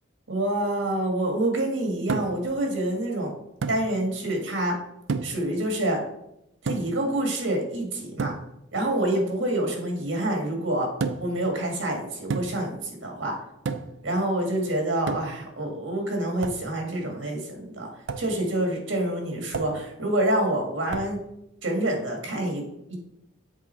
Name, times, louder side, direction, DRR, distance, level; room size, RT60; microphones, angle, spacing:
voice 1, 0.3-3.3 3.7-4.8 5.2-6.0 6.6-8.3 8.7-10.9 11.2-13.3 14.0-17.9 18.2-21.2 21.6-23.0, right 1 dB, 90° right, 1 dB, 1.7 m, -27 dB
sound 1, 2.1-2.5 3.6-3.9 5.1-5.5 6.7-7.0 8.2-8.5 11.0-11.4 12.3-12.7 13.7-14.0 15.1-15.5 16.4-16.7 18.1-18.3 19.5-19.9 20.9-21.2, right 4 dB, 70° right, 0.4 m, -31 dB
7.3 x 3.5 x 4.4 m, 0.83 s
head